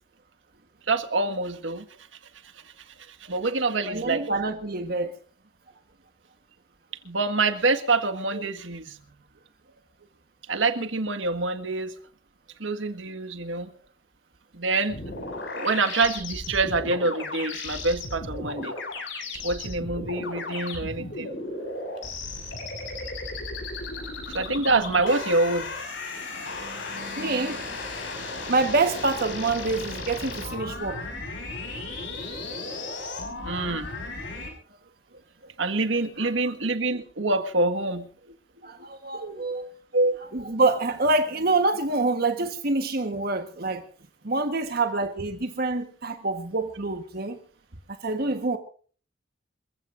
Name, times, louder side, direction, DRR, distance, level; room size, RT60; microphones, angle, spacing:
voice 1, 0.9-1.8 3.3-4.3 7.0-9.0 10.5-11.9 12.6-13.7 14.5-15.0 15.5-18.7 19.4-21.3 24.3-25.7 33.4-33.9 35.6-38.1 39.1-39.4 39.9-40.2, right 3 dB, 75° right, 1.8 m, -26 dB
voice 2, 3.9-5.2 26.6-27.7 28.5-31.0 36.2-36.3 38.6-39.7 40.3-43.8 44.2-47.4 48.0-48.6, right 3 dB, 50° right, 1.4 m, -26 dB
sound 1, 14.9-34.5, left 2 dB, 65° left, 6.6 m, -35 dB
27.5 x 15.5 x 2.7 m
head